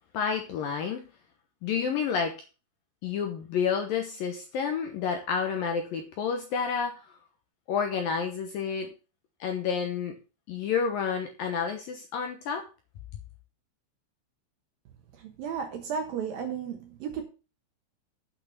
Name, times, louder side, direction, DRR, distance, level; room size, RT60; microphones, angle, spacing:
voice 1, 0.1-1.1 1.6-2.3 3.0-7.1 7.7-8.9 9.4-10.2 10.5-12.6, left 6 dB, 70° left, 2.3 m, -29 dB
voice 2, 15.2-17.2, right 7 dB, 65° right, 2.5 m, -34 dB
8.6 x 5.7 x 7.0 m
omnidirectional pair, 5.3 m